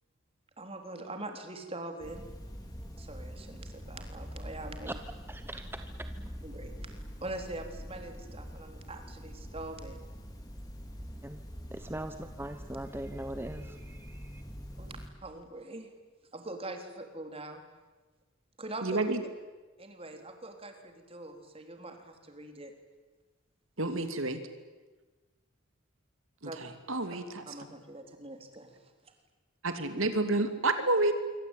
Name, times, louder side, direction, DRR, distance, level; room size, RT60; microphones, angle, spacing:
voice 1, 0.6-2.3 3.0-4.9 6.4-6.7 7.2-10.1 14.8-14.9 15.2-15.9 16.3-17.6 18.6-19.0 19.8-22.7 26.5-26.6 27.5-28.7, right 2 dB, 25° right, 5 dB, 3.7 m, -43 dB
sound 1, 2.0-15.1, equal, 20° left, 4.5 m, -44 dB
voice 2, 5.3-6.1 11.2-11.4 11.7-14.4, right 1 dB, 10° right, 8 dB, 1.0 m, -41 dB
voice 3, 18.8-19.2 23.8-24.4 26.6-27.4 29.6-31.1, right 2 dB, 70° right, 9 dB, 2.7 m, -29 dB
26.0 x 24.5 x 9.2 m, 1.3 s
head